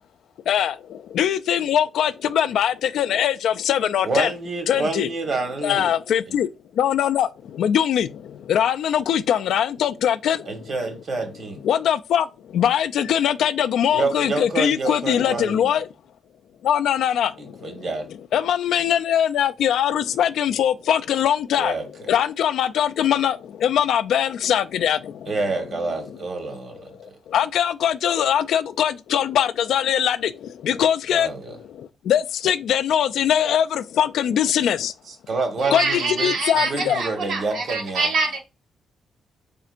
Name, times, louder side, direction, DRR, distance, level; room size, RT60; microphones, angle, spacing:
voice 1, 0.5-4.3 4.7-5.1 5.6-10.7 11.6-15.9 16.6-17.9 18.3-21.8 22.1-25.3 26.0-26.2 26.9-34.9 35.7-37.0, left 9 dB, 75° left, 0.3 m, -22 dB
voice 2, 4.0-5.9 10.5-11.6 13.9-15.7 17.4-18.1 21.6-22.1 25.3-27.1 31.1-31.5 35.3-38.1, right 3 dB, 45° right, 1.3 m, -28 dB
voice 3, 35.6-38.4, right 3 dB, 70° right, 1.3 m, -25 dB
4.2 x 3.7 x 2.5 m
cardioid pair, 120°, 0 cm